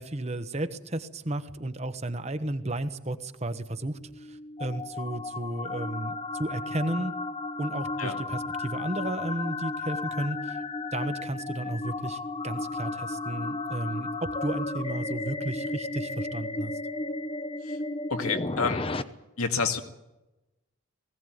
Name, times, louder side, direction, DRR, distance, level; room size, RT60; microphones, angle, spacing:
voice 1, 0.0-7.1 7.6-10.6 10.9-16.7, right 1 dB, 30° right, 10 dB, 1.2 m, -33 dB
sound 1, 3.9-19.0, left 2 dB, 25° left, 0.8 m, -34 dB
voice 2, 18.1-18.9 19.4-19.8, left 5 dB, 85° left, 6 dB, 2.1 m, -29 dB
20.0 x 16.5 x 9.3 m, 0.97 s
head